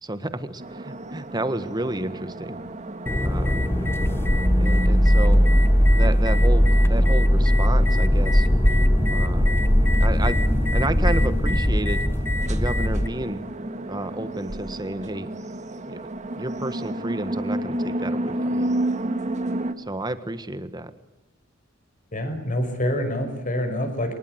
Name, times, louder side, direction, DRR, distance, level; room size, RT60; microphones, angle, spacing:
voice 1, 0.0-2.6 3.2-3.6 4.6-5.4 6.0-8.5 9.1-9.5 10.0-10.4 10.7-12.0 12.5-13.4 13.9-15.3 15.9-18.7 19.8-20.9, right 1 dB, 20° right, 12 dB, 1.5 m, -31 dB
sound 1, 0.6-19.7, right 1 dB, 35° right, 1.6 m, -32 dB
sound 2, 3.1-13.1, equal, 10° left, 0.9 m, -19 dB
voice 2, 22.1-24.1, left 1 dB, 40° left, 7 dB, 5.6 m, -26 dB
24.0 x 21.0 x 8.0 m, 0.95 s
head